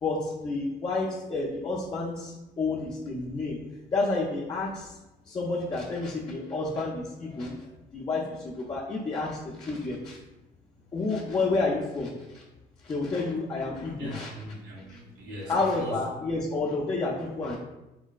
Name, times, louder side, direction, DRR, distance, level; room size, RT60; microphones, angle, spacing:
voice 1, 0.0-3.6 3.9-5.0 5.3-7.5 7.9-10.2 10.9-12.4 12.8-14.3 14.9-15.0 15.5-17.6, left 3 dB, 25° left, -4 dB, 0.4 m, -30 dB
voice 2, 14.0-16.0, equal, 85° right, -2 dB, 0.8 m, -40 dB
3.8 x 2.1 x 2.3 m, 0.97 s
cardioid pair, 110°, 17 cm